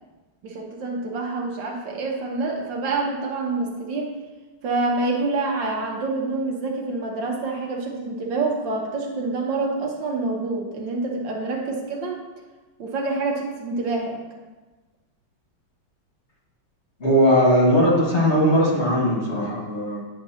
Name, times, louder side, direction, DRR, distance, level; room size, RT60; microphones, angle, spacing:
voice 1, 0.4-4.1 4.6-12.2 12.8-14.2, right 3 dB, 70° right, 0 dB, 1.6 m, -27 dB
voice 2, 17.0-20.0, equal, 35° left, -5 dB, 1.7 m, -19 dB
9.9 x 6.4 x 2.8 m, 1.2 s
omnidirectional pair, 2.1 m